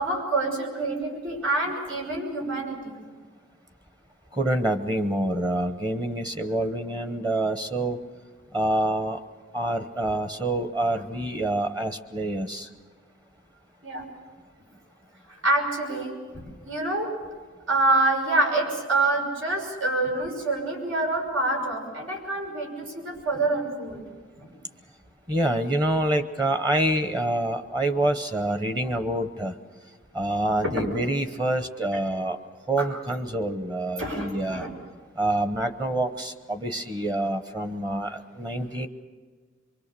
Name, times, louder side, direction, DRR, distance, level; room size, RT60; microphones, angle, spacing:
voice 1, 0.0-3.0 13.8-14.0 15.3-17.1 17.7-24.1 24.4-24.5 30.6-30.8 32.8-32.9 34.0-34.7, right 2 dB, 85° right, 1 dB, 6.2 m, -26 dB
voice 2, 4.3-8.0 8.5-9.2 9.5-12.7 25.3-29.5 30.1-32.4 32.7-34.7 35.2-38.9, right 1 dB, 20° right, 9 dB, 0.9 m, -26 dB
24.5 x 23.5 x 6.9 m, 1.4 s
head